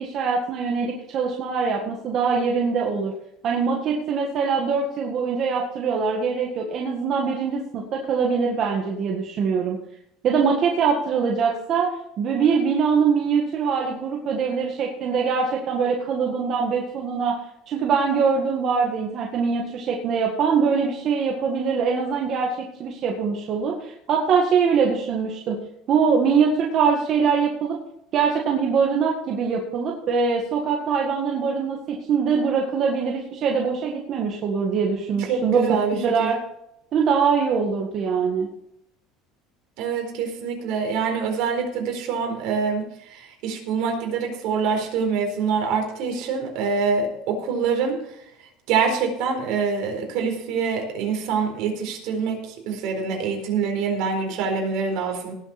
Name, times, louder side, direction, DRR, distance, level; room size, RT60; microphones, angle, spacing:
voice 1, 0.0-3.1 3.4-9.8 10.2-11.9 12.2-17.4 17.7-25.6 25.9-27.8 28.1-36.4 36.9-38.5, right 5 dB, 40° right, -1 dB, 1.9 m, -23 dB
voice 2, 35.3-36.3 39.8-42.8 43.1-48.0 48.7-52.4 52.7-55.3, right 5 dB, 65° right, 3 dB, 4.1 m, -25 dB
18.5 x 7.5 x 4.3 m, 0.78 s
cardioid pair, 155°, 0 cm